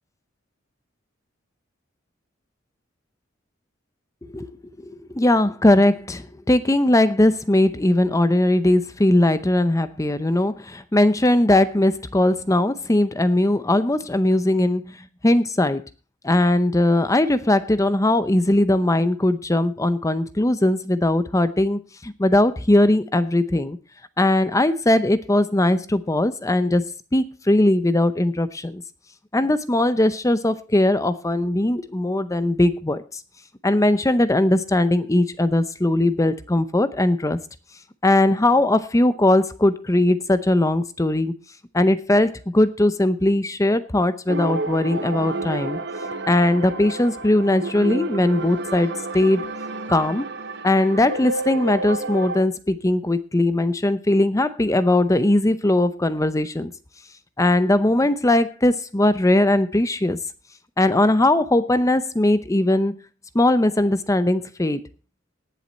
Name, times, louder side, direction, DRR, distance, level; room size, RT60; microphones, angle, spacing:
voice 1, 4.8-15.0 15.2-15.8 16.2-23.8 24.2-26.8 27.1-28.8 29.3-33.0 33.6-37.4 38.0-41.3 41.7-45.8 46.3-49.4 49.9-50.3 50.6-56.7 57.4-60.2 60.8-62.9 63.3-64.8, left 1 dB, 15° left, 13 dB, 0.6 m, -19 dB
sound 1, 44.3-52.4, right 2 dB, 60° right, 1.2 m, -30 dB
18.5 x 7.6 x 4.1 m, 0.34 s
head